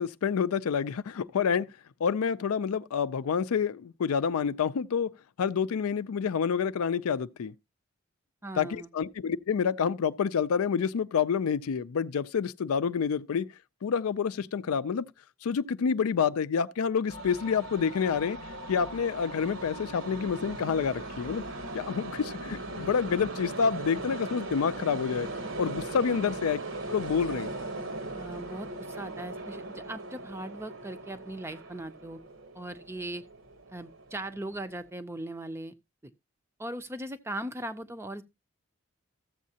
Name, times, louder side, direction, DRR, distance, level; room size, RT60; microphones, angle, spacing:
voice 1, 0.0-1.7 2.0-5.1 5.4-7.5 8.6-13.5 13.8-15.1 15.4-18.4 18.7-21.4 21.7-25.3 25.6-26.6 26.9-27.5, left 6 dB, 85° left, 0.4 m, -28 dB
voice 2, 8.4-8.9 26.1-26.3 28.1-32.2 32.5-33.2 33.7-35.7 36.6-38.2, right 1 dB, 10° right, 0.5 m, -39 dB
sound 1, 17.1-34.8, right 2 dB, 65° right, 1.0 m, -39 dB
14.0 x 7.4 x 2.8 m
head